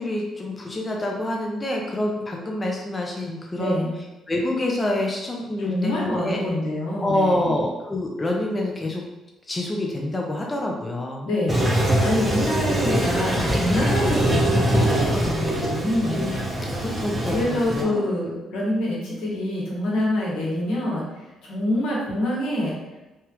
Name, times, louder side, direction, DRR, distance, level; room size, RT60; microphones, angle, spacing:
voice 1, 0.0-3.9 4.3-6.4 7.0-9.0 9.5-11.3 16.1-16.3 16.7-18.0, left 1 dB, 25° left, -1 dB, 0.5 m, -27 dB
voice 2, 3.5-3.9 5.6-7.6 11.2-16.3 16.5-16.7 17.3-21.0 21.4-22.7, left 1 dB, 80° left, -5 dB, 1.1 m, -26 dB
Toilet flush, 11.5-17.8, right 1 dB, 25° right, 0.8 m, -23 dB
3.3 x 2.3 x 3.0 m, 1.1 s
cardioid pair, 75°, 0 cm